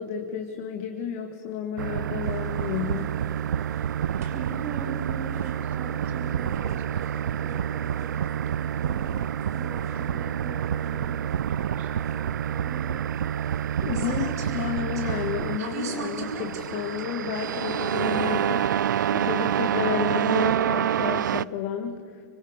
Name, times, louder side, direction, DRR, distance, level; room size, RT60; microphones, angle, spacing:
voice 1, 0.0-3.1 13.8-18.7 19.1-22.2, left 8 dB, 30° left, 4 dB, 1.8 m, -31 dB
sound 1, 1.8-21.4, right 10 dB, 90° right, 0.6 m, -28 dB
sound 2, 2.2-17.1, right 5 dB, 55° right, 4.8 m, -43 dB
voice 2, 4.1-9.1 9.5-12.9, right 4 dB, 20° right, 4 dB, 3.2 m, -41 dB
29.5 x 25.5 x 6.6 m, 2.2 s
supercardioid pair, 175°, 10 cm